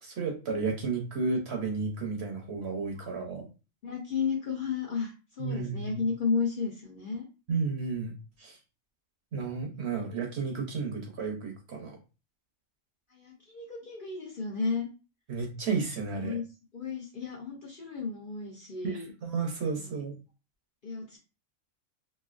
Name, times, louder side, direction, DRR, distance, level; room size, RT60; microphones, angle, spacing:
voice 1, 0.0-3.5 5.4-6.0 7.5-8.1 8.4-8.6 9.3-12.0 15.3-16.4 18.8-20.1, right 4 dB, 60° right, 2 dB, 0.9 m, -32 dB
voice 2, 3.8-7.3 9.7-9.8 13.1-14.9 16.2-16.4 16.7-19.1 19.8-19.9 20.8-21.2, left 5 dB, 50° left, -1 dB, 0.7 m, -33 dB
3.1 x 2.5 x 2.4 m, 0.31 s
omnidirectional pair, 1.4 m